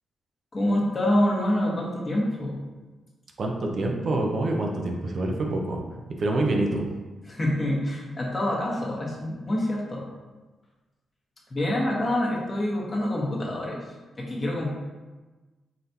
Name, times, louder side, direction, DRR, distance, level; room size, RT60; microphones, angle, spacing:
voice 1, 0.5-2.6 7.3-10.0 11.5-13.8 14.2-14.7, left 1 dB, 40° left, -3 dB, 1.3 m, -26 dB
voice 2, 3.4-5.8 6.2-6.9, right 2 dB, 60° right, 1 dB, 0.7 m, -26 dB
4.0 x 3.2 x 2.7 m, 1.2 s
hypercardioid pair, 45°, 0 cm